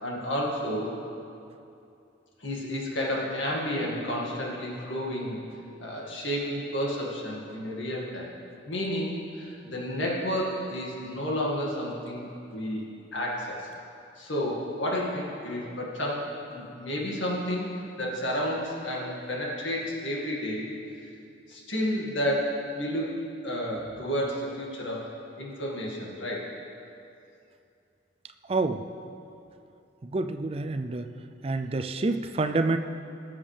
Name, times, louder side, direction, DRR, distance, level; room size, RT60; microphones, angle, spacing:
voice 1, 0.0-1.0 2.4-5.5 5.8-8.3 8.7-12.8 13.1-13.7 14.2-20.7 21.5-26.5, equal, 85° left, -3 dB, 2.1 m, -31 dB
voice 2, 28.5-28.9 30.0-31.1 31.4-32.8, right 3 dB, 30° right, 8 dB, 0.4 m, -28 dB
18.5 x 7.3 x 3.4 m, 2.6 s
head